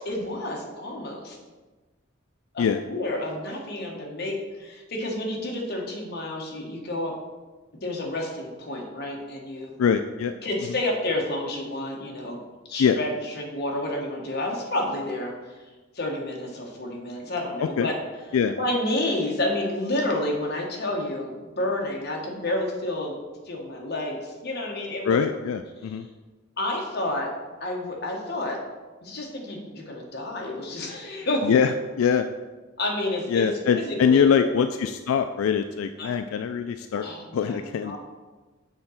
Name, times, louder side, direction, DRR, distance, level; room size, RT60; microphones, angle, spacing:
voice 1, 0.0-1.4 2.5-7.1 7.8-9.7 10.4-12.4 12.7-15.3 15.9-18.0 18.6-23.2 23.5-25.2 26.6-27.3 27.6-28.6 29.0-31.5 32.8-33.5 33.7-34.5 36.0-36.1 36.9-38.0, left 1 dB, 50° left, -1 dB, 1.3 m, -30 dB
voice 2, 9.8-10.3 12.8-13.0 17.8-17.9 18.3-18.5 25.0-26.1 31.4-32.3 33.3-37.1 37.3-38.0, left 7 dB, 90° left, 8 dB, 0.3 m, -23 dB
6.6 x 3.8 x 5.7 m, 1.2 s
head